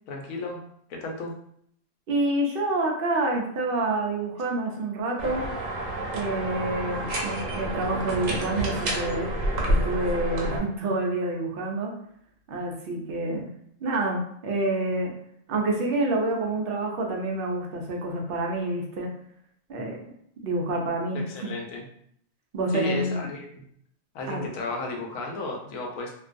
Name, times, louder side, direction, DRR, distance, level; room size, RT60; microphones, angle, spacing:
voice 1, 0.1-0.6 0.9-1.3 21.1-21.9 22.7-23.4 24.1-26.1, left 3 dB, 85° left, 1 dB, 1.0 m, -33 dB
voice 2, 2.1-5.4 6.1-9.3 9.6-11.9 12.5-13.5 13.8-15.1 15.5-19.1 19.7-20.0 20.4-21.5 22.5-23.3 24.3-24.4, right 2 dB, 55° right, 0 dB, 0.6 m, -28 dB
sound 1, 5.2-10.6, right 1 dB, 85° right, 1.1 m, -29 dB
2.5 x 2.2 x 2.5 m, 0.68 s
omnidirectional pair, 1.4 m